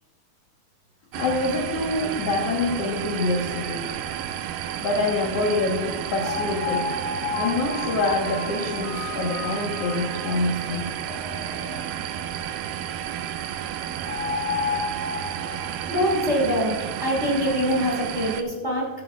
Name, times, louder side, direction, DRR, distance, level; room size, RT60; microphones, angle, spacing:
voice 1, 1.1-3.8 4.8-6.9 7.4-10.9, left 2 dB, 55° left, -3 dB, 1.8 m, -26 dB
sound 1, 1.1-18.4, right 10 dB, 80° right, 2.0 m, -32 dB
sound 2, 5.8-5.9 6.2-10.0 10.3-10.4 10.7-10.8 11.1-11.8 14.1-15.9, left 5 dB, 75° left, 5.7 m, -31 dB
voice 2, 15.9-18.9, equal, 20° right, -2 dB, 2.6 m, -24 dB
14.0 x 11.5 x 2.4 m, 1.4 s
omnidirectional pair, 4.3 m